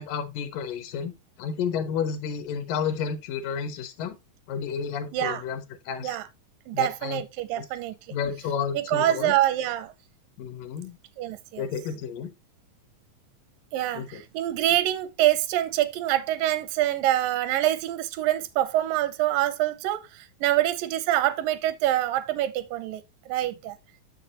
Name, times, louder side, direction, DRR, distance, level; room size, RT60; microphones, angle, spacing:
voice 1, 0.0-4.2 4.5-6.2 6.7-7.2 7.6-7.7 8.1-9.4 10.4-11.0 11.6-12.3 13.9-14.2, left 7 dB, 75° left, 2.5 m, -31 dB
voice 2, 5.1-5.4 6.0-6.3 6.7-8.0 8.7-9.9 11.2-11.7 13.7-23.8, right 13 dB, 85° right, 2.2 m, -25 dB
7.2 x 6.6 x 2.9 m
omnidirectional pair, 4.0 m